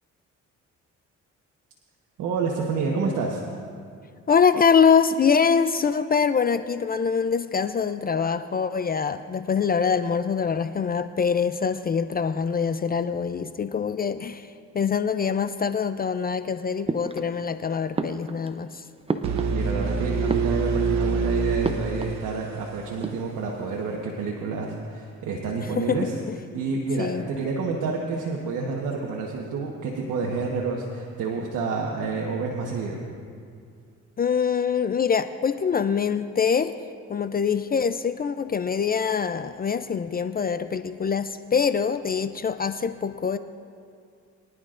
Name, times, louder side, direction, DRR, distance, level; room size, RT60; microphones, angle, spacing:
voice 1, 2.2-3.4 19.5-26.1 26.5-33.0, right 4 dB, 85° right, -2 dB, 1.3 m, -29 dB
voice 2, 4.3-18.8 25.6-26.3 27.0-27.3 34.2-36.7 37.1-43.4, left 6 dB, 30° left, 11 dB, 0.4 m, -24 dB
sound 1, 16.9-17.6 17.9-19.9 20.2-21.0 21.6-22.2 22.5-22.6 22.9-23.6, right 3 dB, 20° right, 0.6 m, -32 dB
sound 2, 19.2-23.1, right 4 dB, 65° right, 1.0 m, -26 dB
23.0 x 11.0 x 2.5 m, 2.3 s
cardioid pair, 90°, 30 cm